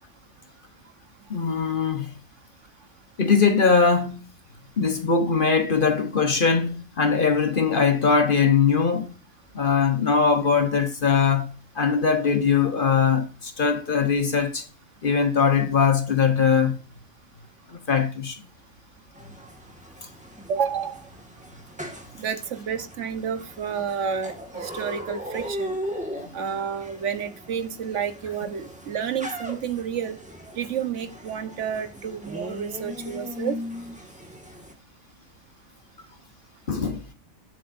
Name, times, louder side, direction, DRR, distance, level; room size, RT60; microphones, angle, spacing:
voice 1, 1.3-2.1 3.2-4.2 4.8-9.1 9.5-14.6 15.0-16.8 17.7-18.4 36.7-37.0, left 5 dB, 45° left, 1.1 m, -21 dB
sound 1, 19.1-34.7, equal, 5° right, 1.8 m, -38 dB
voice 2, 20.5-21.1 22.1-25.8 26.3-30.2 30.5-33.6, right 7 dB, 60° right, 1.3 m, -30 dB
20.0 x 7.5 x 2.6 m
omnidirectional pair, 1.4 m